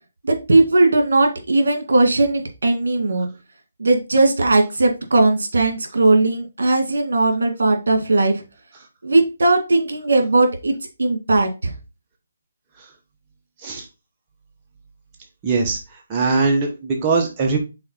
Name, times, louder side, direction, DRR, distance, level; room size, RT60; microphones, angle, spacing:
voice 1, 0.2-3.3 3.8-8.4 9.0-10.7 11.0-11.5, right 2 dB, 75° right, 5 dB, 1.9 m, -18 dB
voice 2, 15.4-15.8 16.1-17.6, right 4 dB, 20° right, 0 dB, 1.2 m, -20 dB
5.8 x 4.1 x 4.0 m, 0.27 s
hypercardioid pair, 155°, 0 cm